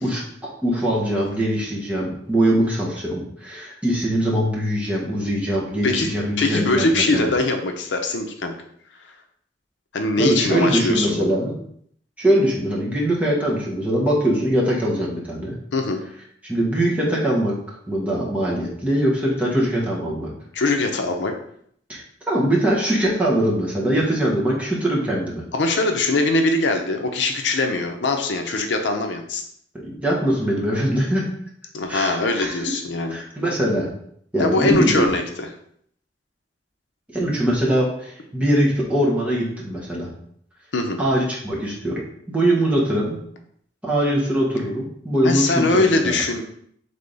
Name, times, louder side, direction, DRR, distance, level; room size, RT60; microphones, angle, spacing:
voice 1, 0.0-7.3 10.2-11.5 12.2-15.5 16.4-20.3 21.9-25.4 29.8-31.3 31.9-32.6 33.1-33.9 34.3-35.1 37.1-40.1 41.0-42.0 42.3-43.2 43.8-46.2, right 1 dB, 10° right, -5 dB, 1.2 m, -22 dB
voice 2, 6.4-8.6 9.9-11.4 15.7-16.0 20.5-21.3 25.5-29.4 31.7-33.2 34.4-35.2 40.7-41.0 45.2-46.4, left 2 dB, 80° left, 5 dB, 0.6 m, -22 dB
3.7 x 3.4 x 3.9 m, 0.65 s
head